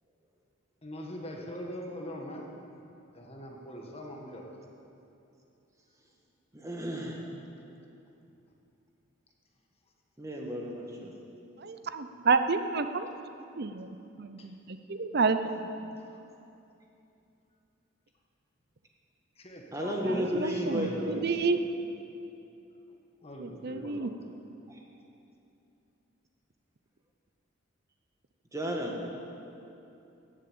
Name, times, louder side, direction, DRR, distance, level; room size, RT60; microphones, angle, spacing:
voice 1, 0.8-2.5 3.1-4.5 14.4-14.5 19.4-21.2 23.2-24.1, equal, 30° left, 0 dB, 1.6 m, -42 dB
voice 2, 6.5-7.3 10.2-11.1 19.7-21.3 28.5-29.0, equal, 15° right, 0 dB, 1.5 m, -33 dB
voice 3, 11.6-13.1 13.6-16.0 20.0-21.6 23.4-24.1, right 4 dB, 55° right, 10 dB, 0.7 m, -30 dB
14.5 x 8.2 x 8.7 m, 2.8 s
head